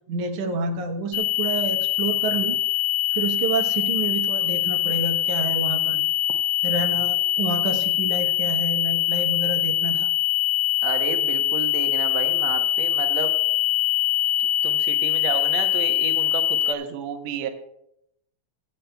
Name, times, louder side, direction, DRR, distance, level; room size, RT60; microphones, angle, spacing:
voice 1, 0.1-2.6 3.1-6.1 6.6-10.1, right 4 dB, 90° right, 4 dB, 2.5 m, -28 dB
sound 1, 1.1-16.7, left 14 dB, 80° left, 1.3 m, -23 dB
voice 2, 10.8-13.3 14.6-17.5, right 8 dB, 70° right, 5 dB, 2.0 m, -31 dB
23.5 x 8.4 x 2.2 m, 0.78 s
omnidirectional pair, 3.3 m